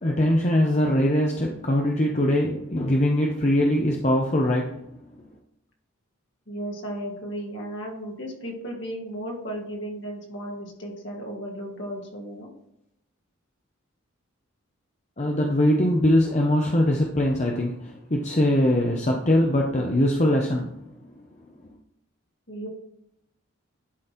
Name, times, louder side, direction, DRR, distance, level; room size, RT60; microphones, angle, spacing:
voice 1, 0.0-4.8 15.2-20.7, left 1 dB, 30° left, 0 dB, 0.8 m, -22 dB
voice 2, 6.5-12.5 22.5-22.7, right 1 dB, 55° left, -1 dB, 2.3 m, -35 dB
11.0 x 4.0 x 4.4 m, 0.79 s
head